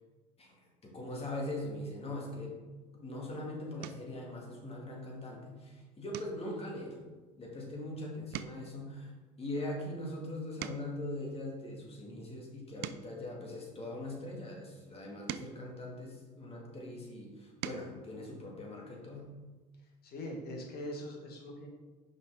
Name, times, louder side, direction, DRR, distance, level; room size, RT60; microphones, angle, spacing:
voice 1, 0.8-2.5 2.9-7.0 7.4-9.1 9.4-19.3, left 1 dB, 30° left, -1 dB, 2.1 m, -41 dB
sound 1, 2.9-3.2 3.8-4.2 4.7-5.1 5.4-5.6 6.1-7.9 8.2-11.1 11.7-14.2 14.9-16.7 17.3-18.0 19.4-19.5 19.8-20.0, right 12 dB, 55° right, 0.4 m, -47 dB
voice 2, 20.0-21.7, left 1 dB, 55° left, 1 dB, 1.7 m, -42 dB
5.5 x 5.4 x 3.7 m, 1.2 s
hypercardioid pair, 75°, 20 cm